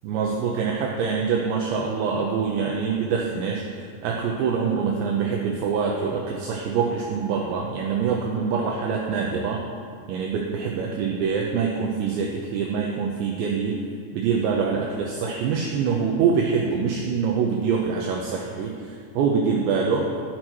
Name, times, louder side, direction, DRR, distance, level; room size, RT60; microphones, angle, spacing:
voice 1, 0.0-9.6 10.1-13.8 14.1-20.1, right 6 dB, 90° right, -1 dB, 2.5 m, -25 dB
12.0 x 6.2 x 4.4 m, 2.2 s
omnidirectional pair, 6.0 m